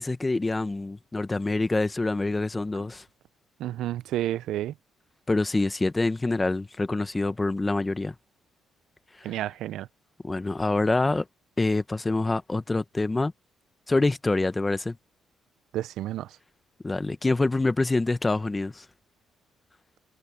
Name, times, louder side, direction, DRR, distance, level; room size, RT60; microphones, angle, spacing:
voice 1, 0.0-3.0 5.3-8.1 10.2-11.2 11.6-13.3 13.9-14.9 16.8-18.8, left 2 dB, 20° left, 1.3 m, -26 dB
voice 2, 3.6-4.7 9.2-9.9 15.7-16.3, right 13 dB, 80° right, 0.6 m, -30 dB
supercardioid pair, 75°, 0 cm